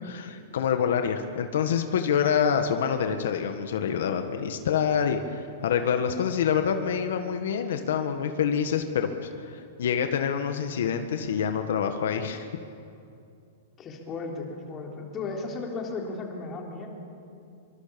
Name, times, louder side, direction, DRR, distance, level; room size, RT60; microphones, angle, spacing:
voice 1, 0.1-9.1 9.4-12.5, left 7 dB, 70° left, 7 dB, 1.7 m, -26 dB
voice 2, 13.8-16.9, left 3 dB, 20° left, 0 dB, 3.6 m, -35 dB
26.0 x 24.5 x 7.1 m, 2.5 s
supercardioid pair, 165°, 0 cm